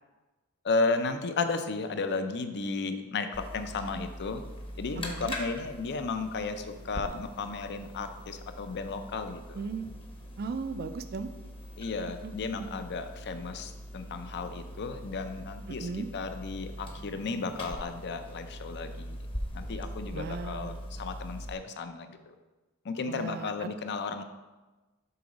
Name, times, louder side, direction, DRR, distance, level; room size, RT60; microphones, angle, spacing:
voice 1, 0.6-3.3 3.5-4.4 4.8-9.6 11.8-19.2 19.5-22.3 22.8-24.2, left 4 dB, 50° left, 8 dB, 0.5 m, -34 dB
sound 1, 3.3-21.5, equal, 25° left, 0.8 m, -42 dB
voice 2, 9.5-9.9 10.4-11.3 12.2-12.7 15.7-16.1 20.1-20.8 23.1-23.7, right 4 dB, 45° right, 11 dB, 0.4 m, -37 dB
6.8 x 3.9 x 5.1 m, 1.2 s
head